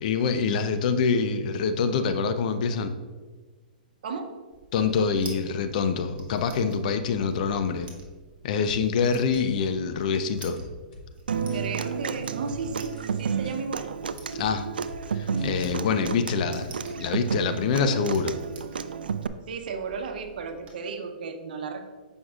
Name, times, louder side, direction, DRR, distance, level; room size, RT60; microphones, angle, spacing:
voice 1, 0.0-3.0 4.7-7.9 8.4-10.6 14.3-14.6 15.1-18.4, left 5 dB, 55° left, 9 dB, 0.5 m, -25 dB
voice 2, 4.0-4.3 11.5-13.9 19.5-21.9, right 5 dB, 70° right, 6 dB, 0.8 m, -34 dB
sound 1, 4.5-20.7, right 3 dB, 25° right, 1.0 m, -50 dB
sound 2, 8.6-8.8 9.4-9.7 10.6-11.1 11.5-11.7 12.2-12.6 13.0-13.6 14.4-14.5 14.9-15.0 15.4-15.7 16.1-16.2, left 2 dB, 75° left, 1.6 m, -45 dB
Human voice / Acoustic guitar, 11.3-19.3, right 6 dB, 85° right, 0.3 m, -31 dB
7.7 x 5.2 x 2.4 m, 1.3 s
hypercardioid pair, 125°, 5 cm